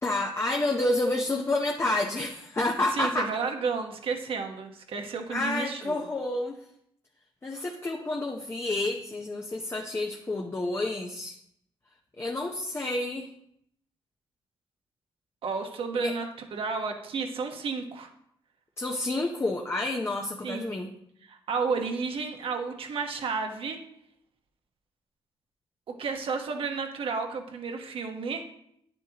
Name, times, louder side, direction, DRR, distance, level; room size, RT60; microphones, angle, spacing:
voice 1, 0.0-3.3 5.3-6.6 7.4-11.4 12.2-13.3 15.9-16.1 18.8-20.9, left 2 dB, 25° left, 2 dB, 0.8 m, -29 dB
voice 2, 2.9-6.0 15.4-18.1 20.4-20.8 21.3-23.8 25.9-28.4, right 5 dB, 70° right, 4 dB, 1.2 m, -32 dB
9.5 x 7.8 x 2.9 m, 0.72 s
cardioid pair, 80°, 10 cm